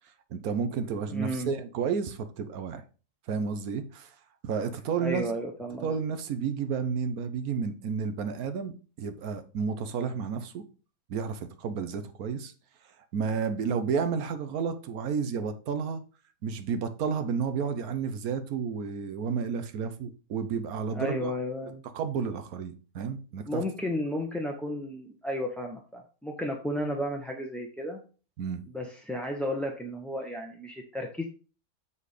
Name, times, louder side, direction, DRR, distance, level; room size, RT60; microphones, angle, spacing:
voice 1, 0.3-2.8 3.3-4.1 4.4-5.2 5.8-10.6 11.1-12.5 13.1-16.0 16.4-21.3 21.9-23.6 28.4-28.6, right 6 dB, 90° right, 1.3 m, -31 dB
voice 2, 1.1-1.5 5.0-5.9 20.9-21.8 23.5-28.0 28.7-31.2, equal, ahead, 0.6 m, -33 dB
7.4 x 4.2 x 4.9 m
omnidirectional pair, 1.5 m